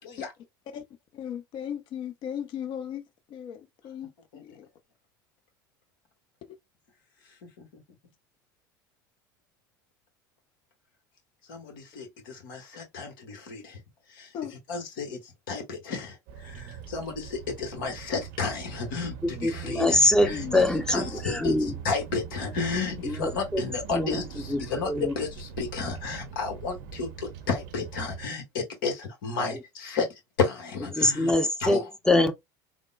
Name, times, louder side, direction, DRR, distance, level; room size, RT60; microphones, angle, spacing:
voice 1, 1.1-3.0 3.3-4.7 6.5-6.6 14.3-14.5 20.3-21.7, left 9 dB, 50° left, 0.6 m, -37 dB
voice 2, 11.5-13.8 14.1-14.3 14.7-20.5 20.9-21.5 21.8-30.1 30.4-31.3 31.6-31.8, left 4 dB, 75° left, 1.2 m, -32 dB
Bird vocalization bird call bird song, 16.3-28.3, right 8 dB, 65° right, 0.7 m, -41 dB
voice 3, 19.2-21.7 23.0-23.6 23.9-24.2 24.5-25.1 29.5-29.6 30.9-32.3, left 1 dB, 5° left, 0.6 m, -24 dB
3.5 x 2.0 x 2.3 m
hypercardioid pair, 75°, 11 cm